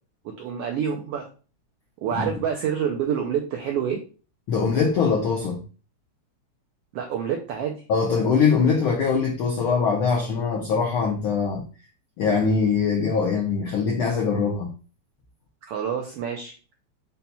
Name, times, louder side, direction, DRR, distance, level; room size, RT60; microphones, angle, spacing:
voice 1, 0.4-1.3 2.0-4.0 6.9-7.8 15.7-16.5, right 8 dB, 80° right, 1.3 m, -27 dB
voice 2, 4.5-5.6 7.9-11.6 12.2-14.7, left 5 dB, 80° left, 1.2 m, -22 dB
5.6 x 4.2 x 2.2 m
omnidirectional pair, 3.3 m